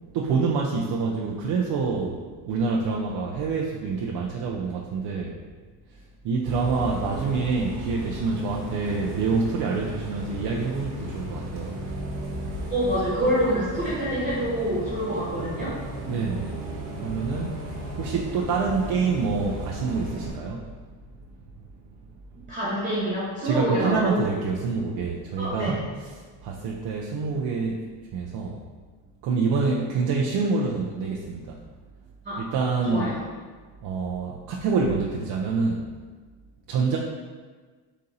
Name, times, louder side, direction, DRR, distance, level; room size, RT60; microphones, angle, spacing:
voice 1, 0.1-5.3 6.2-11.8 16.0-16.6 16.9-17.5 18.0-20.6 23.4-25.7 26.4-27.8 28.1-28.6 29.2-31.6 32.4-33.1 33.8-35.8 36.7-37.0, right 4 dB, 55° right, -2 dB, 0.5 m, -26 dB
Bus, 6.5-20.3, equal, 80° right, 1.2 m, -35 dB
voice 2, 12.7-15.7 22.3-24.2 25.4-25.8 32.2-32.4 32.9-33.2, right 1 dB, 15° right, -8 dB, 1.2 m, -26 dB
4.1 x 2.6 x 3.8 m, 1.4 s
cardioid pair, 115°, 45 cm